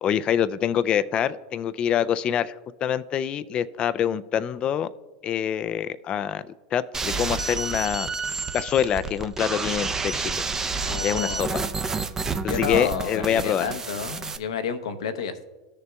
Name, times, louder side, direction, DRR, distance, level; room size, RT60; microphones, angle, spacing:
voice 1, 0.0-2.5 2.8-4.9 5.2-6.5 6.7-8.1 8.5-10.3 11.0-11.6 12.4-13.7, left 9 dB, 35° left, 14 dB, 0.3 m, -25 dB
sound 1, 6.9-14.4, right 4 dB, 20° right, 0.5 m, -29 dB
voice 2, 10.8-11.5 12.4-15.5, left 7 dB, 80° left, 9 dB, 0.7 m, -30 dB
14.0 x 6.7 x 2.3 m, 1.2 s
hypercardioid pair, 110°, 3 cm